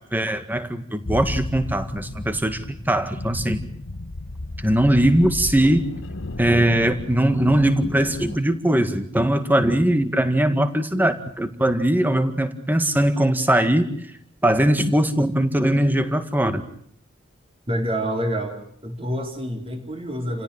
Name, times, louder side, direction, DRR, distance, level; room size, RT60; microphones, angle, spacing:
voice 1, 0.1-3.7 4.6-5.9 6.4-14.0 14.4-16.6, right 1 dB, 10° right, 9 dB, 1.9 m, -20 dB
sound 1, 1.1-8.4, left 2 dB, 80° left, 1.1 m, -33 dB
voice 2, 17.7-20.4, equal, 30° right, 2 dB, 4.5 m, -27 dB
29.5 x 17.5 x 8.9 m, 0.64 s
head